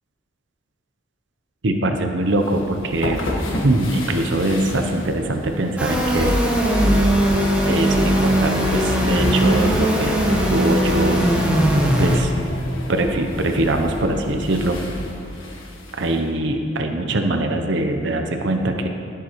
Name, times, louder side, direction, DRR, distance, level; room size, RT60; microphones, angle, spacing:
voice 1, 1.6-3.3 3.6-6.4 7.6-10.2 10.5-11.6 12.0-12.3 12.9-14.8 16.0-18.9, right 1 dB, 60° right, 5 dB, 0.6 m, -22 dB
sound 1, 2.3-16.2, left 1 dB, 80° left, 1.4 m, -28 dB
sound 2, 5.8-12.2, right 1 dB, 5° right, 1.1 m, -20 dB
15.0 x 7.2 x 3.0 m, 2.4 s
head